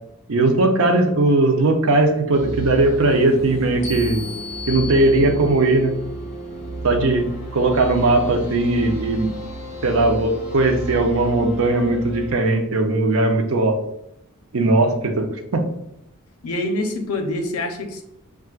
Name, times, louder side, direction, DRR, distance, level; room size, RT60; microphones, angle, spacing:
voice 1, 0.3-4.3 4.7-5.9 6.8-9.3 9.8-13.8 14.5-15.6, right 2 dB, 70° right, 4 dB, 0.6 m, -18 dB
sound 1, 2.3-12.3, right 2 dB, 35° left, 1.0 m, -32 dB
sound 2, 3.8-5.7, left 5 dB, 60° left, 0.9 m, -35 dB
voice 2, 16.4-18.0, left 1 dB, 90° left, 5 dB, 0.6 m, -25 dB
5.6 x 2.4 x 2.4 m, 0.80 s
head